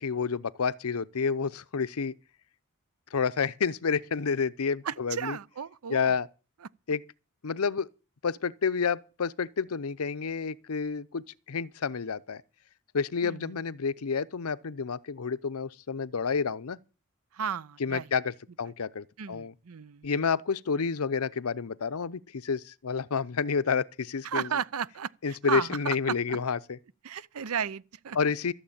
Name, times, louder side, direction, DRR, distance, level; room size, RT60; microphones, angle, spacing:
voice 1, 0.0-2.1 3.1-5.4 5.9-6.3 6.9-7.0 7.4-7.9 8.2-12.4 12.9-16.8 17.8-19.5 20.0-24.5 25.2-26.6 28.1-28.5, left 5 dB, 85° left, 0.7 m, -29 dB
voice 2, 4.8-6.1 13.2-13.5 17.3-18.1 19.2-20.3 24.2-26.4 27.0-28.2, right 7 dB, 80° right, 0.6 m, -34 dB
14.5 x 7.2 x 8.7 m
head